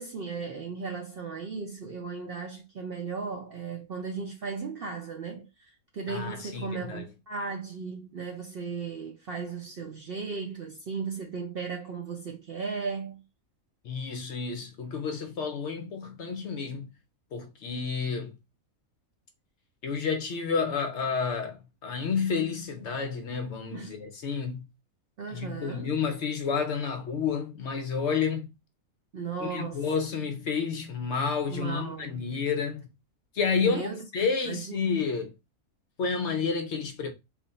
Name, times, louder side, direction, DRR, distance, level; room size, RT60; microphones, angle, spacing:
voice 1, 0.0-13.2 23.7-23.9 25.2-25.9 29.1-29.9 31.5-32.2 33.6-34.0 34.5-34.8, right 5 dB, 60° right, 0.6 m, -36 dB
voice 2, 6.1-7.1 13.8-16.9 17.3-18.4 19.8-24.7 25.3-28.6 29.4-32.9 33.3-35.3 36.0-37.1, left 5 dB, 65° left, 0.8 m, -30 dB
3.2 x 2.4 x 3.9 m
omnidirectional pair, 1.5 m